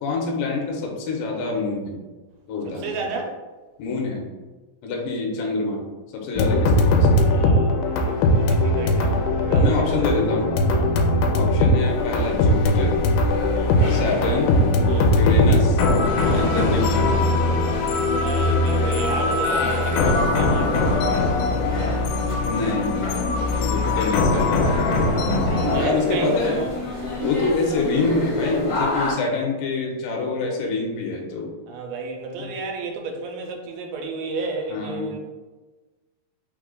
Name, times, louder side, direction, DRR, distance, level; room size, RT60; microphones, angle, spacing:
voice 1, 0.0-2.0 2.5-3.0 3.8-4.3 4.8-5.8 6.1-7.1 9.5-10.5 11.3-13.0 13.9-14.6 15.1-15.8 16.3-17.2 22.4-23.0 23.6-24.7 25.8-26.6 27.2-31.5 34.7-35.2, left 3 dB, 75° left, -1 dB, 2.3 m, -26 dB
voice 2, 2.6-3.3 7.2-10.4 10.7-10.9 13.5-13.8 14.9-15.2 16.2-16.5 18.1-21.4 25.5-26.7 27.2-27.4 31.7-35.2, right 4 dB, 85° right, 2 dB, 2.4 m, -33 dB
sound 1, 6.4-25.8, left 2 dB, 90° left, 2.4 m, -20 dB
sound 2, 11.8-29.1, equal, 55° left, 1.1 m, -31 dB
sound 3, 13.8-15.3 16.3-20.5 21.0-21.2 21.6-22.3 22.6-22.7 23.0-26.0, right 2 dB, 70° right, 1.7 m, -38 dB
5.6 x 2.3 x 3.7 m, 1.3 s
omnidirectional pair, 4.3 m